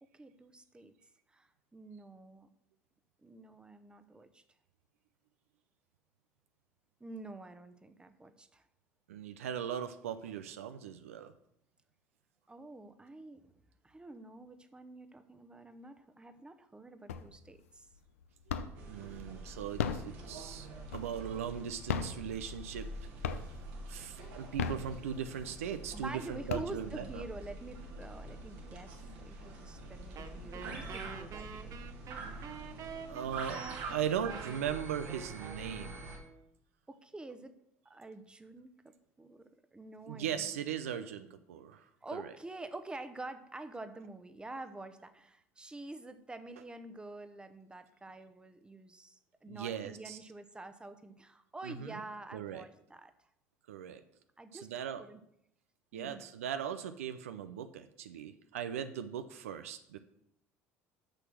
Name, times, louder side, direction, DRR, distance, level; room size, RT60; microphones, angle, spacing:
voice 1, 0.0-1.0 1.3-2.5 3.2-4.4 7.0-8.7 12.5-13.5 13.8-17.9 25.9-31.8 36.9-37.6 37.8-40.5 42.0-53.1 54.4-54.7 55.0-55.2 55.9-56.3, right 2 dB, 15° right, 10 dB, 0.9 m, -48 dB
voice 2, 9.1-11.3 18.9-20.7 20.9-22.9 23.2-23.4 23.9-27.2 33.1-36.0 40.1-42.3 49.5-50.2 51.6-52.0 52.3-52.6 53.7-54.0 54.5-55.0 55.9-60.0, right 8 dB, 85° right, 10 dB, 0.5 m, -39 dB
sound 1, 17.1-17.6 17.9-19.0 19.6-21.4 21.8-22.9 23.2-23.8 24.4-25.4 25.9-26.0 26.3-27.2, left 7 dB, 85° left, 0.5 m, -36 dB
sound 2, 18.7-36.2, right 2 dB, 70° right, 2.1 m, -46 dB
Wind instrument woodwind instrument, 30.2-36.5, right 6 dB, 45° right, 0.9 m, -47 dB
6.5 x 6.1 x 6.2 m, 0.76 s
hypercardioid pair, 70°, 7 cm